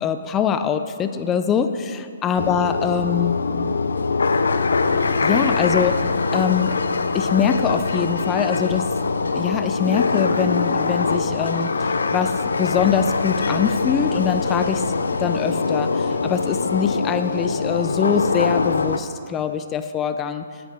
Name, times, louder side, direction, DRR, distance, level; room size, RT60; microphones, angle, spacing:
voice 1, 0.0-3.4 5.2-6.8 7.1-8.9 9.4-14.8 15.2-20.4, left 7 dB, 20° left, 9 dB, 0.6 m, -23 dB
sound 1, 2.4-19.0, left 4 dB, 75° left, 0.6 m, -23 dB
14.5 x 8.2 x 4.0 m, 2.3 s
figure-of-eight pair, 130°, 0 cm